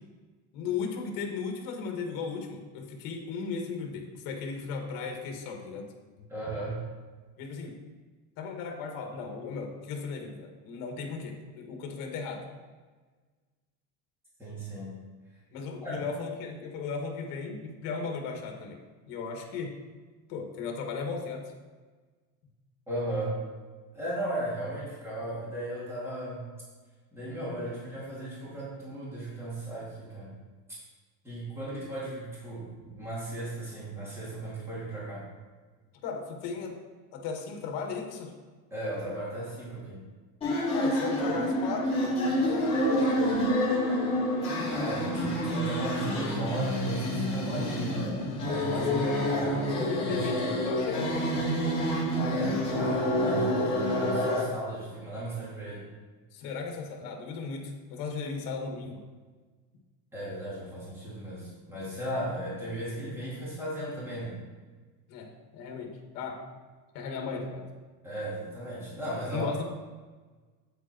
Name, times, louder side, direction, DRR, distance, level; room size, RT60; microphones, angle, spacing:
voice 1, 0.5-5.9 7.4-7.8 8.4-12.4 15.5-18.8 19.1-19.8 20.3-21.5 36.0-36.8 37.1-38.3 40.7-43.2 48.7-49.1 49.7-51.2 56.3-59.0 65.1-66.4 66.9-67.7 69.2-69.6, left 5 dB, 60° left, 2 dB, 1.9 m, -36 dB
voice 2, 6.3-6.8 14.4-14.9 15.8-16.0 22.9-23.4 23.9-26.4 27.1-30.3 31.2-35.3 38.7-40.0 44.7-47.9 48.4-49.7 49.9-50.5 52.3-55.9 60.1-64.4 68.0-69.5, right 1 dB, 5° right, -8 dB, 2.7 m, -36 dB
sound 1, 40.4-54.4, equal, 15° left, 3.2 m, -28 dB
8.8 x 8.2 x 4.5 m, 1.4 s
cardioid pair, 175°, 38 cm